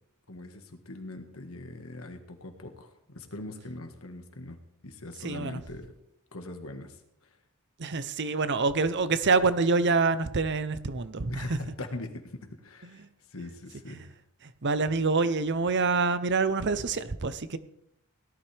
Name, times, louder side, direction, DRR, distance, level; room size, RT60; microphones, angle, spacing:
voice 1, 0.3-5.9 6.3-7.3 11.3-14.1, left 2 dB, 70° left, 6 dB, 1.6 m, -42 dB
voice 2, 5.2-5.6 7.8-11.6 13.9-14.0 14.6-17.6, right 4 dB, 55° right, 13 dB, 0.8 m, -26 dB
17.5 x 12.0 x 3.5 m, 0.78 s
head